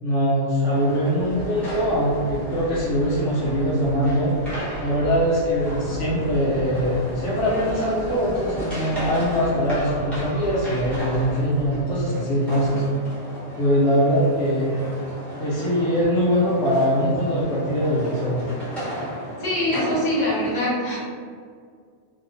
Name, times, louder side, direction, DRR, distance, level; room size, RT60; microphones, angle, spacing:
voice 1, 0.0-4.3 4.8-12.8 13.6-14.7 15.4-18.5, equal, 75° left, -7 dB, 1.0 m, -22 dB
sound 1, 0.7-20.5, equal, ahead, 1.0 m, -34 dB
sound 2, 1.2-11.8, equal, 20° left, 1.4 m, -38 dB
voice 2, 19.4-21.0, left 1 dB, 40° left, -9 dB, 1.2 m, -24 dB
2.9 x 2.7 x 2.6 m, 2.1 s
omnidirectional pair, 1.2 m